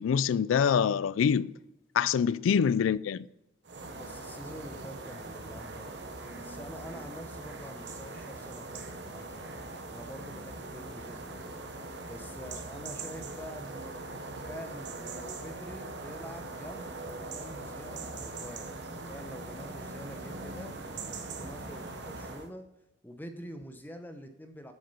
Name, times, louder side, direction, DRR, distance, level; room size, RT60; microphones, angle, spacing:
voice 1, 0.0-1.5 1.9-3.2, left 7 dB, 90° left, 0.3 m, -25 dB
sound 1, 3.6-22.5, right 2 dB, 60° right, 0.8 m, -41 dB
voice 2, 3.9-9.5 9.9-11.6 12.1-14.0 14.3-18.7 18.9-20.7 21.1-22.7 23.0-24.7, equal, 10° left, 0.7 m, -46 dB
8.3 x 6.5 x 5.4 m
head